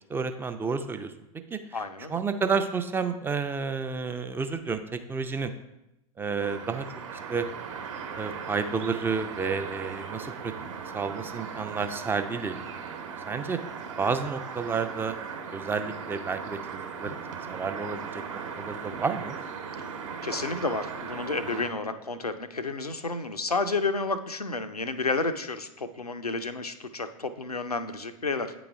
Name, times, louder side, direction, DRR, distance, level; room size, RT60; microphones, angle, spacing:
voice 1, 0.1-1.1 1.5-1.6 2.1-5.5 6.2-6.8 7.3-7.5 8.2-10.5 10.9-12.6 13.3-13.6 14.0-15.2 15.5-18.2 18.6-19.4, right 5 dB, 10° right, 8 dB, 0.4 m, -30 dB
voice 2, 1.7-2.2 11.3-11.7 19.8-19.9 20.2-28.5, left 3 dB, 90° left, 8 dB, 0.6 m, -31 dB
sound 1, 6.4-21.7, right 6 dB, 55° right, 1.1 m, -38 dB
8.4 x 4.0 x 4.7 m, 0.90 s
figure-of-eight pair, 90°, 19 cm